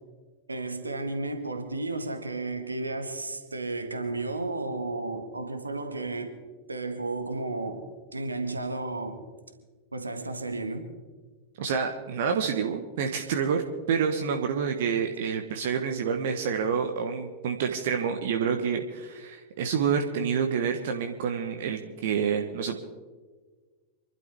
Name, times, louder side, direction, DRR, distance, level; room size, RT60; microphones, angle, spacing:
voice 1, 0.5-6.4 6.7-7.9 8.1-9.2 9.9-10.9, right 2 dB, 80° right, 1.6 m, -33 dB
voice 2, 11.6-13.6 13.9-22.8, right 6 dB, 55° right, 1.2 m, -28 dB
26.5 x 12.0 x 3.5 m
figure-of-eight pair, 90°, 0 cm